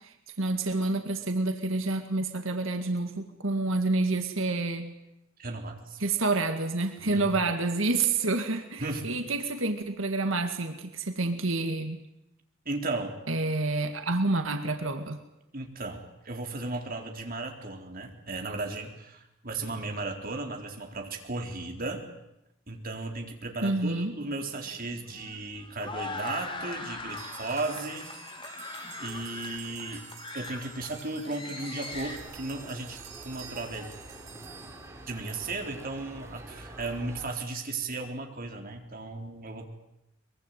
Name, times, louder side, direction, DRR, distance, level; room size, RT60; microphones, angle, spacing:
voice 1, 0.4-4.9 6.0-12.0 13.3-15.2 23.6-24.1, right 2 dB, 85° right, 6 dB, 2.1 m, -28 dB
voice 2, 5.4-6.0 7.0-7.3 8.8-9.1 12.7-13.2 15.5-22.1 22.7-28.1 29.0-30.0 30.3-33.9 35.1-39.7, right 2 dB, 50° right, 3 dB, 4.0 m, -35 dB
sound 1, 24.2-32.2, left 3 dB, 25° left, 3.2 m, -41 dB
sound 2, 27.1-35.6, right 8 dB, 65° right, 6.0 m, -49 dB
sound 3, 31.9-37.4, right 1 dB, 15° right, 4.6 m, -46 dB
23.5 x 23.0 x 9.2 m, 0.86 s
head